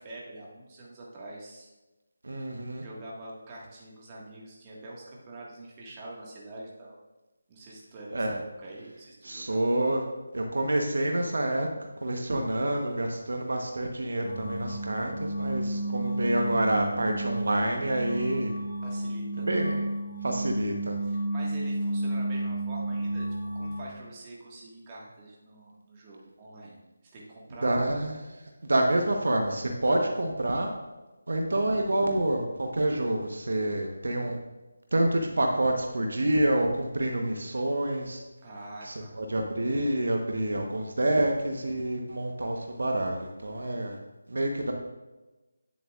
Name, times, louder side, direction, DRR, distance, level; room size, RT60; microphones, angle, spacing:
voice 1, 0.0-1.7 2.7-7.0 7.5-9.6 18.8-19.6 21.0-23.3 23.5-26.8 27.1-27.8 38.4-39.2, right 1 dB, 25° right, -4 dB, 1.6 m, -45 dB
voice 2, 2.2-2.8 8.1-8.4 9.2-10.0 10.3-11.7 12.0-18.5 19.5-19.9 20.2-20.9 27.6-28.3 28.7-30.7 31.3-34.4 34.9-38.2 38.8-44.0 44.3-44.7, right 1 dB, 70° right, 3 dB, 1.0 m, -27 dB
sound 1, 14.2-23.9, right 1 dB, 50° left, 2.2 m, -32 dB
9.6 x 7.5 x 2.4 m, 1.1 s
figure-of-eight pair, 160°, 0 cm